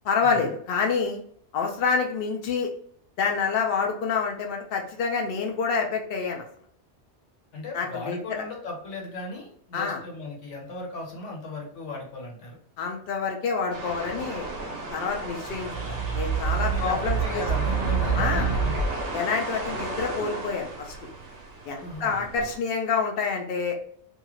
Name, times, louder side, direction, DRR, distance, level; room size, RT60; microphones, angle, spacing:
voice 1, 0.0-1.2 1.5-2.7 3.2-6.5 7.7-8.4 9.7-10.0 12.8-14.5 14.9-17.2 18.1-18.5 19.1-20.9 21.7-23.8, left 5 dB, 60° left, 1 dB, 0.8 m, -27 dB
voice 2, 7.5-12.6 16.5-18.8 21.8-22.2, left 3 dB, 90° left, -1 dB, 1.2 m, -37 dB
sound 1, 13.7-22.6, right 2 dB, 65° right, 0.8 m, -35 dB
sound 2, 15.5-19.1, right 6 dB, 25° right, 0.4 m, -27 dB
2.7 x 2.4 x 3.0 m, 0.63 s
omnidirectional pair, 1.2 m